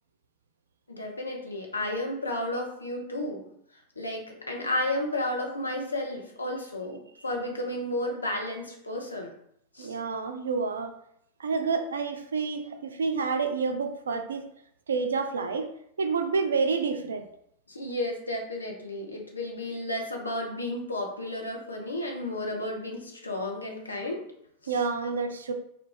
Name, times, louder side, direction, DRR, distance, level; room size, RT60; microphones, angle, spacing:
voice 1, 0.9-3.4 4.0-9.3 9.7-9.9 17.7-24.2, left 1 dB, 80° left, 2 dB, 0.5 m, -32 dB
voice 2, 9.8-10.9 11.4-14.5 14.9-15.7 16.0-17.3 24.7-25.5, right 5 dB, 70° right, 7 dB, 0.3 m, -28 dB
2.4 x 2.2 x 3.7 m, 0.71 s
figure-of-eight pair, 90°, 0 cm